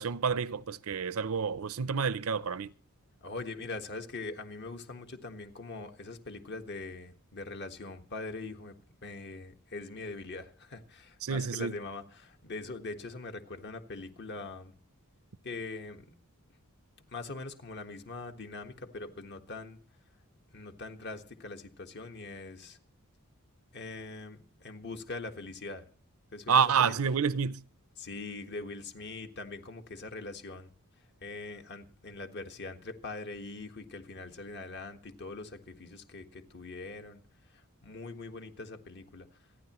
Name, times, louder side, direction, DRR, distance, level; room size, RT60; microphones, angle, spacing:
voice 1, 0.0-2.7 11.2-11.7 26.5-27.6, right 6 dB, 65° right, 0.6 m, -28 dB
voice 2, 3.2-8.7 9.0-14.7 15.4-16.1 17.1-19.8 20.5-22.8 23.7-25.8 26.3-26.9 28.0-30.7 31.2-37.2 37.8-39.3, left 3 dB, 50° left, 1.5 m, -42 dB
27.5 x 10.0 x 3.0 m
head